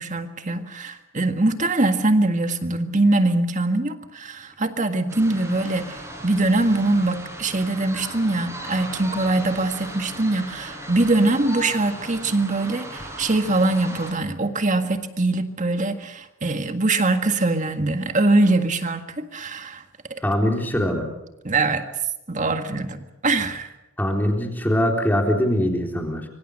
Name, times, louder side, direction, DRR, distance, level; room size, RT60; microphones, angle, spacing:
voice 1, 0.0-19.8 20.1-20.2 21.4-21.9 22.3-23.7, right 2 dB, 35° right, 7 dB, 1.7 m, -22 dB
sound 1, 5.1-14.1, right 1 dB, 15° right, 6.0 m, -37 dB
voice 2, 20.2-21.1 24.0-26.3, equal, 10° left, 2 dB, 3.8 m, -22 dB
25.5 x 24.0 x 6.6 m, 0.93 s
head